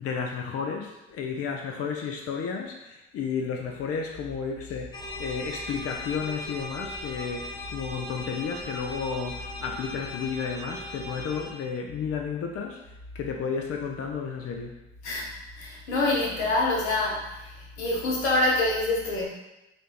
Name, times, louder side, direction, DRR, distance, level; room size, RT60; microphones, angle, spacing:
voice 1, 0.0-14.7, left 6 dB, 45° left, 2 dB, 0.6 m, -32 dB
sound 1, 4.9-11.5, left 1 dB, 15° left, 0.8 m, -38 dB
voice 2, 15.0-19.2, left 2 dB, 80° left, -3 dB, 1.0 m, -26 dB
6.2 x 2.6 x 3.0 m, 0.94 s
hypercardioid pair, 50°, 33 cm